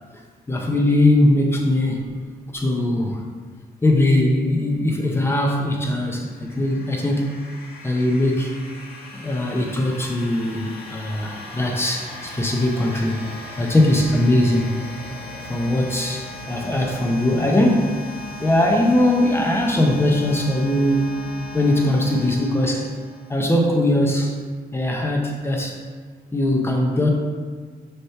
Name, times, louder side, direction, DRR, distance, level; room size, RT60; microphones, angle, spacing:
voice 1, 0.5-2.1 2.5-3.2 3.8-7.4 7.8-8.5 9.1-13.2 13.6-14.7 15.5-18.0 18.4-21.1 21.5-22.9 23.3-24.4 24.7-25.8 26.3-27.1, left 1 dB, 15° left, 0 dB, 0.7 m, -20 dB
sound 1, 6.0-23.6, left 1 dB, 85° left, 1.3 m, -38 dB
6.6 x 2.9 x 5.6 m, 1.5 s
wide cardioid pair, 165°, 16 cm